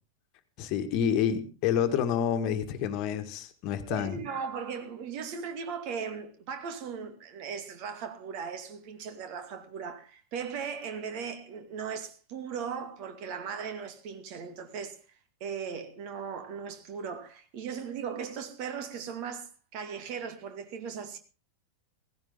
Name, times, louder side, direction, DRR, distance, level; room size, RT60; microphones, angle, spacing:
voice 1, 0.6-4.2, left 8 dB, 40° left, 1.7 m, -28 dB
voice 2, 3.9-15.0 15.4-21.2, right 6 dB, 45° right, 2.3 m, -38 dB
16.5 x 16.0 x 3.7 m
figure-of-eight pair, 90°, 0 cm